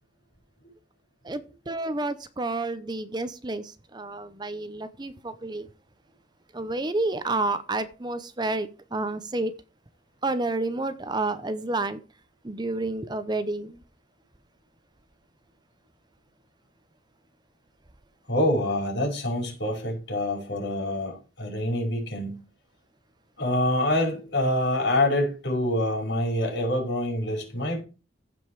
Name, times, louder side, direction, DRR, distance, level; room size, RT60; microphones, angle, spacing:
voice 1, 1.2-3.6 3.9-5.7 6.5-9.5 10.2-12.0 12.4-13.8, right 2 dB, 25° right, 0.7 m, -30 dB
voice 2, 18.3-22.3 23.4-27.8, left 1 dB, 75° left, 5.1 m, -26 dB
15.5 x 5.3 x 4.7 m
head